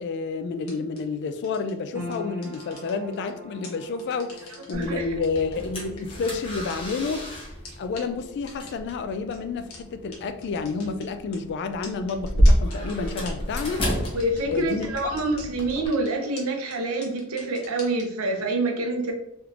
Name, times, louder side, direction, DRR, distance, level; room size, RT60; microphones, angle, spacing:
voice 1, 0.0-7.3 7.8-13.9 14.5-15.2, left 4 dB, 55° left, 0.3 m, -30 dB
sound 1, 0.7-1.0 1.4-1.7 2.1-3.3 3.6-4.8 5.2-7.2 7.6-7.7 8.0-8.1 8.5-8.9 9.3-9.4 9.7-9.8 10.1-10.2 10.4-11.4 11.8-15.4 15.7-16.1 16.4-16.5 16.7-16.8 17.0-18.0, left 3 dB, 75° left, 1.0 m, -43 dB
sound 2, 1.9-14.4 14.6-15.6 16.0-16.1, left 1 dB, 10° right, 0.9 m, -46 dB
sound 3, 4.7-15.9, equal, 25° left, 0.8 m, -29 dB
voice 2, 4.7-5.1 14.1-19.1, right 2 dB, 75° right, 0.6 m, -27 dB
3.2 x 3.1 x 2.4 m
head